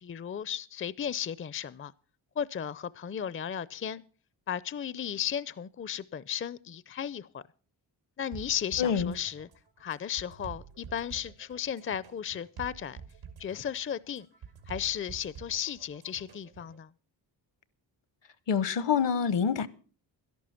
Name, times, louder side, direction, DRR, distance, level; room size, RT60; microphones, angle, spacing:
voice 1, 0.0-1.9 2.4-4.0 4.5-7.4 8.2-9.5 9.8-13.0 13.4-14.3 14.7-16.9, left 9 dB, 30° left, 0.5 m, -35 dB
sound 1, 8.3-16.8, right 6 dB, 90° right, 2.5 m, -48 dB
voice 2, 8.8-9.1 18.5-19.7, left 7 dB, 65° left, 1.0 m, -26 dB
12.5 x 11.5 x 5.8 m
supercardioid pair, 50°, 46 cm